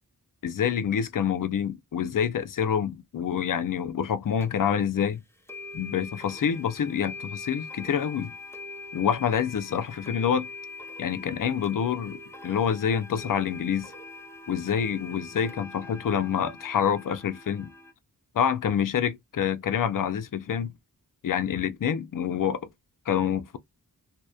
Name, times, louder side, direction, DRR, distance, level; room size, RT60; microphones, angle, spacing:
voice 1, 0.4-5.2 5.7-8.3 8.9-10.5 11.0-13.9 14.5-17.7 18.3-20.7 21.2-22.6 23.1-23.6, left 8 dB, 60° left, 0.5 m, -27 dB
sound 1, 4.4-4.5 5.5-17.9, left 3 dB, 5° left, 0.5 m, -42 dB
2.8 x 2.0 x 2.2 m
wide cardioid pair, 80°, 37 cm